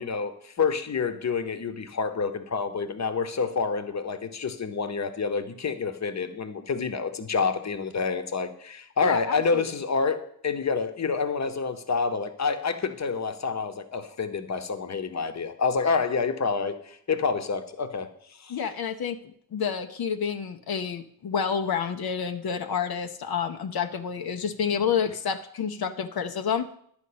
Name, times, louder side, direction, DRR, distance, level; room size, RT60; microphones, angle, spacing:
voice 1, 0.0-18.1 18.4-18.6, left 5 dB, 50° left, 9 dB, 1.0 m, -28 dB
voice 2, 9.0-9.6 18.5-26.7, left 7 dB, 85° left, 7 dB, 0.8 m, -29 dB
11.5 x 5.2 x 8.6 m, 0.66 s
wide cardioid pair, 135°, 36 cm